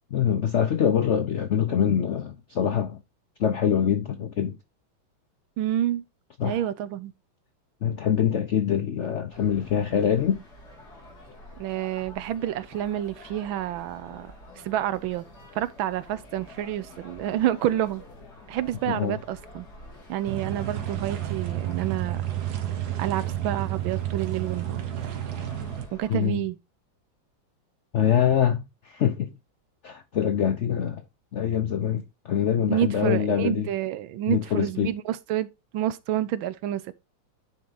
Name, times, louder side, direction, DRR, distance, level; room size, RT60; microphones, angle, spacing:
voice 1, 0.1-3.0 3.4-4.6 6.4-6.6 7.8-10.4 18.9-19.2 26.1-26.4 27.9-29.3 29.8-31.0 31.3-33.7 34.3-34.9, left 9 dB, 85° left, 0.6 m, -24 dB
voice 2, 5.6-6.0 6.4-7.1 11.6-14.3 14.6-15.2 15.5-18.0 18.5-19.7 20.1-22.2 23.0-24.8 25.9-26.6 32.7-36.9, right 12 dB, 85° right, 1.5 m, -28 dB
sound 1, 9.3-26.1, left 1 dB, 50° left, 3.1 m, -48 dB
sound 2, 20.3-25.9, right 12 dB, 60° right, 1.5 m, -31 dB
9.9 x 4.5 x 3.9 m
omnidirectional pair, 2.1 m